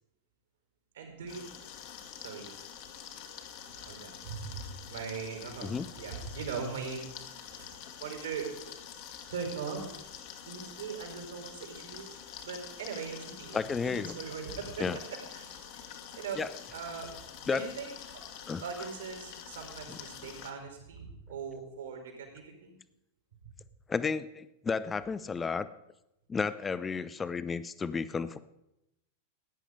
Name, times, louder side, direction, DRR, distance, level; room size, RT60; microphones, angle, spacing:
voice 1, 0.9-1.4 2.2-2.5 3.8-7.0 7.5-8.5 9.3-10.1 10.4-12.2 12.4-13.6 14.1-15.8 16.1-16.4 16.7-17.1 17.4-18.2 18.6-22.8 23.4-23.5, right 6 dB, 65° right, 2 dB, 4.7 m, -40 dB
sound 1, 1.3-20.5, left 9 dB, 45° left, 2.0 m, -47 dB
voice 2, 13.5-14.1 14.8-15.0 16.4-16.5 17.5-17.6 18.5-18.6 19.9-20.0 23.9-25.7 26.3-28.4, left 5 dB, 15° left, 14 dB, 0.7 m, -32 dB
17.0 x 10.5 x 5.0 m, 0.86 s
figure-of-eight pair, 90°, 0 cm